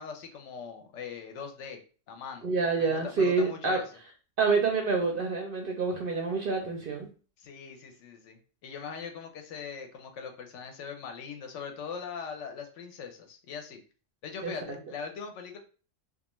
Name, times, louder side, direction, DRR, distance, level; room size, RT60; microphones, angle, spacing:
voice 1, 0.0-1.8 2.1-2.5 2.8-3.8 7.4-13.8 14.2-15.6, left 6 dB, 70° left, 4 dB, 0.8 m, -41 dB
voice 2, 2.4-3.8 4.4-7.1 14.4-14.5, right 4 dB, 60° right, 1 dB, 0.6 m, -27 dB
2.3 x 2.3 x 2.9 m, 0.36 s
omnidirectional pair, 1.3 m